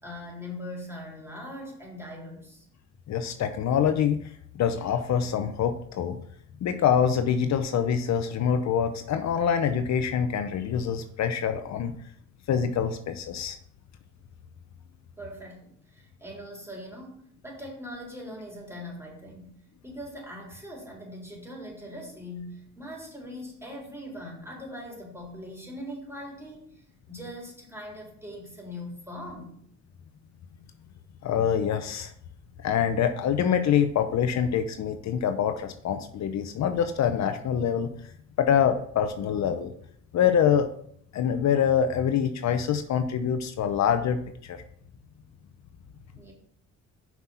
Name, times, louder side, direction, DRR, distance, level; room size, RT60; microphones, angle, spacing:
voice 1, 0.0-2.7 15.2-19.6 19.8-29.6 46.1-46.3, left 1 dB, 10° right, -3 dB, 3.7 m, -41 dB
voice 2, 3.1-4.2 4.5-6.2 6.6-11.9 12.5-13.6 31.2-32.1 32.6-37.9 38.4-39.7 40.1-40.7 41.1-44.6, left 8 dB, 65° left, 8 dB, 0.7 m, -25 dB
5.9 x 5.9 x 5.7 m, 0.64 s
cardioid pair, 90°, 30 cm